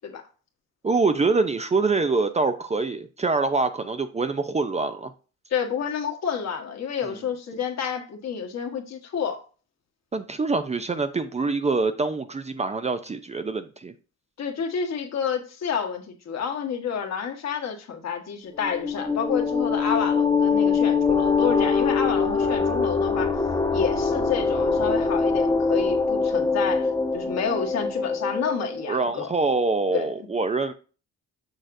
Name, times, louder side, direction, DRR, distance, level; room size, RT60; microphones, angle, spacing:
voice 1, 0.8-5.1 7.0-7.2 10.1-13.9 28.9-30.7, right 3 dB, 20° right, 0.5 m, -25 dB
voice 2, 5.5-9.4 14.4-23.3 23.7-29.3 29.9-30.1, left 7 dB, 60° left, 1.4 m, -29 dB
sound 1, 18.6-28.8, left 4 dB, 10° left, 0.9 m, -23 dB
6.4 x 6.3 x 2.6 m
cardioid pair, 90°, 30 cm